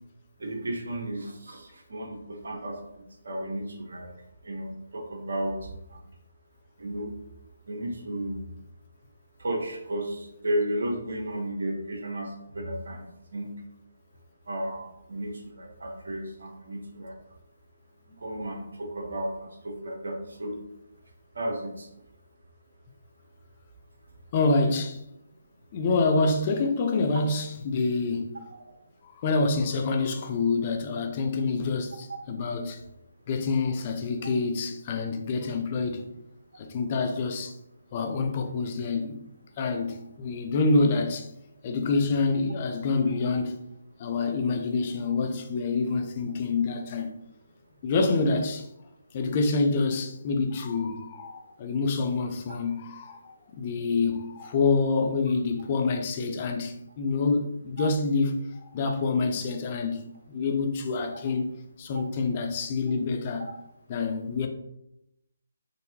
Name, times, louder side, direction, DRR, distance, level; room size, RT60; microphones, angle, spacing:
voice 1, 0.4-4.1 4.4-5.6 5.9-6.0 6.8-7.1 7.7-8.4 9.4-13.5 14.5-17.2 18.2-20.5 21.3-21.9 28.5-28.6 57.8-57.9, right 1 dB, 75° right, 1.0 m, -33 dB
voice 2, 24.3-25.0 25.7-28.3 29.0-32.8 33.3-36.1 36.6-37.5 37.9-39.2 39.6-41.3 41.6-43.6 44.0-47.1 47.8-48.7 49.1-58.4 58.7-61.5 61.8-63.5 63.9-64.5, left 3 dB, 35° left, 0.4 m, -27 dB
3.9 x 2.7 x 2.7 m
hypercardioid pair, 155°, 0 cm